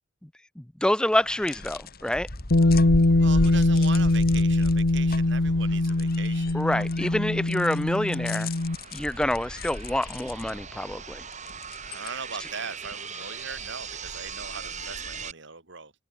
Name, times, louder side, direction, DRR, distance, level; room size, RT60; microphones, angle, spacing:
voice 1, 0.8-2.3 6.5-8.5 8.9-11.2, left 1 dB, 5° left, 0.4 m, -27 dB
sound 1, 1.1-15.3, left 2 dB, 50° left, 2.6 m, -37 dB
Bass guitar, 2.5-8.8, left 2 dB, 65° left, 1.2 m, -22 dB
voice 2, 3.2-6.9 11.9-15.9, right 5 dB, 65° right, 3.2 m, -40 dB
sound 2, 4.5-15.3, right 7 dB, 40° right, 7.5 m, -42 dB
head